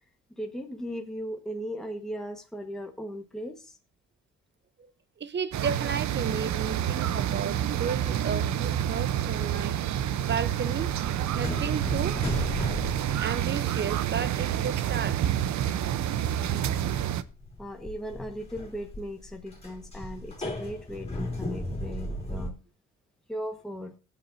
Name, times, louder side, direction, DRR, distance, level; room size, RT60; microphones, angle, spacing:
voice 1, 0.3-3.8 16.5-16.9 17.6-22.6 23.3-24.0, equal, ahead, 1.4 m, -38 dB
voice 2, 5.2-9.8 10.2-11.0 11.3-12.2 13.2-15.3, right 6 dB, 35° right, 0.8 m, -33 dB
sound 1, 5.5-17.2, right 10 dB, 70° right, 0.8 m, -28 dB
sound 2, 10.7-14.5 14.8-15.8 16.1-16.2 16.8-22.5, left 1 dB, 20° left, 3.4 m, -36 dB
16.5 x 8.3 x 2.7 m
cardioid pair, 90°, 30 cm